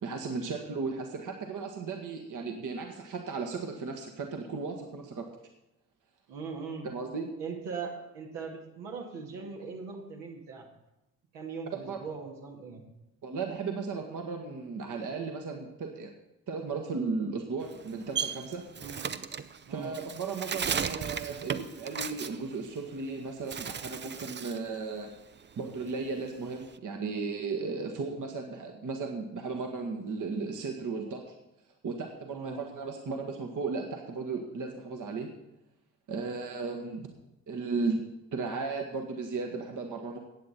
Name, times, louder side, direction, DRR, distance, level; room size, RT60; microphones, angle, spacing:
voice 1, 0.0-5.3 6.8-7.3 11.9-12.0 13.2-16.1 16.5-18.6 19.7-25.1 25.6-31.3 31.8-35.3 36.1-37.1 37.5-38.0 38.3-40.2, right 4 dB, 45° right, 3 dB, 1.5 m, -35 dB
voice 2, 6.3-6.9 7.4-10.7 11.3-12.8 18.8-19.1 19.6-20.0 32.3-32.7, right 5 dB, 65° right, 0 dB, 2.0 m, -40 dB
Bird, 17.6-23.1 23.4-24.7 25.0-26.8, right 7 dB, 25° right, 0.6 m, -36 dB
14.5 x 8.8 x 4.2 m, 0.92 s
figure-of-eight pair, 40°, 44 cm